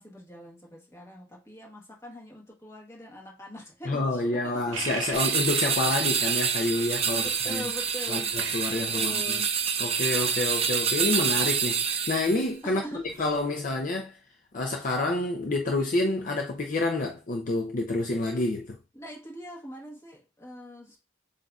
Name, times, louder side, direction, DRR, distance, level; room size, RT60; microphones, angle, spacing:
voice 1, 0.0-4.6 7.0-8.4 8.7-9.5 12.6-13.1 18.9-21.0, equal, 15° left, 1.3 m, -43 dB
voice 2, 3.9-7.6 8.1-8.2 8.5-9.4 9.8-12.8 13.2-14.1 14.5-18.8, left 2 dB, 40° left, 0.5 m, -28 dB
sound 1, 4.7-12.5 13.0-13.4, right 5 dB, 80° right, 0.8 m, -41 dB
sound 2, 5.1-12.4, right 6 dB, 30° right, 0.5 m, -27 dB
7.5 x 2.5 x 2.3 m
head